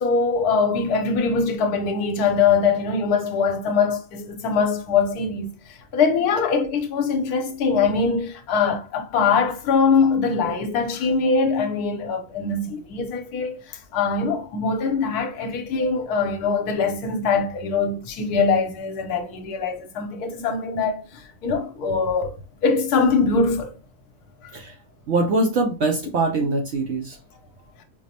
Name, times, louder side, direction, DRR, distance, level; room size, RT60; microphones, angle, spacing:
voice 1, 0.0-22.3 22.6-23.7 24.4-24.5, left 5 dB, 80° left, 1.2 m, -22 dB
voice 2, 25.1-27.2, right 2 dB, 65° right, 0.7 m, -23 dB
5.2 x 2.0 x 2.8 m
omnidirectional pair, 1.7 m